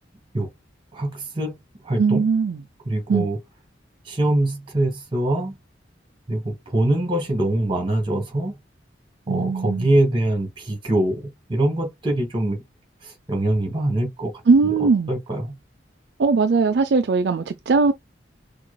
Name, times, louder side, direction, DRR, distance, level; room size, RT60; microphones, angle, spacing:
voice 1, 0.9-1.6 1.8-2.3 2.9-3.4 4.1-5.6 6.3-8.6 9.3-11.2 11.5-12.6 13.0-14.3 14.8-15.5, right 1 dB, 25° right, 1.6 m, -23 dB
voice 2, 2.0-2.6 3.1-3.3 9.3-9.9 14.5-15.2 16.2-17.9, right 4 dB, 60° right, 0.4 m, -19 dB
5.9 x 2.4 x 2.2 m
head